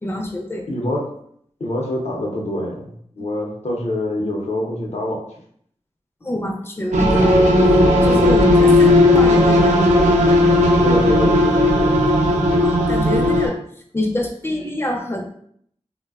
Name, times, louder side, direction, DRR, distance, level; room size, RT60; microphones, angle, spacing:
voice 1, 0.0-0.7 3.2-3.3 6.2-7.4 7.7-9.8 12.6-13.6 13.9-15.4, left 1 dB, 20° left, 2 dB, 0.4 m, -26 dB
voice 2, 0.7-1.1 1.6-5.2 10.8-12.0, left 1 dB, 65° left, -1 dB, 0.6 m, -25 dB
sound 1, 6.9-13.5, left 1 dB, 75° right, 0.5 m, -15 dB
2.5 x 2.2 x 2.3 m, 0.66 s
cardioid pair, 40°, 12 cm